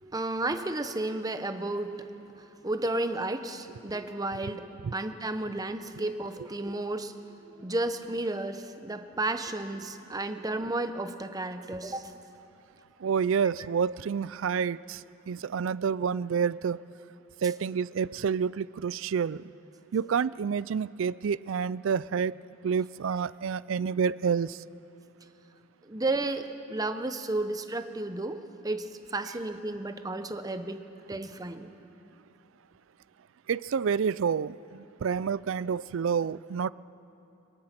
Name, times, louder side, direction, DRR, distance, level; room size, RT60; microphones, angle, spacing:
voice 1, 0.0-2.0 2.4-12.1 25.8-30.8 31.1-31.7, right 2 dB, 15° right, 8 dB, 0.8 m, -33 dB
voice 2, 13.0-16.8 17.4-19.4 19.9-22.4 22.6-24.6 33.5-36.7, right 6 dB, 65° right, 19 dB, 0.4 m, -29 dB
22.5 x 21.5 x 6.0 m, 2.9 s
head